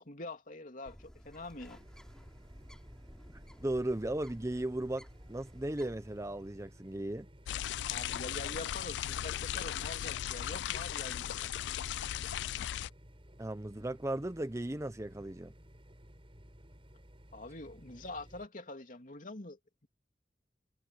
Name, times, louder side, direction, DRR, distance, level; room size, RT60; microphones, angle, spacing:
voice 1, 0.0-1.8 7.9-11.5 17.3-19.9, left 2 dB, 50° left, 3.1 m, -45 dB
Bird, 0.9-6.8, equal, 5° left, 3.2 m, -55 dB
sound 1, 1.6-18.5, equal, 30° right, 4.9 m, -56 dB
voice 2, 3.6-7.3 13.4-15.5, right 1 dB, 15° right, 0.8 m, -36 dB
sound 2, 7.5-12.9, left 11 dB, 80° left, 0.3 m, -37 dB
head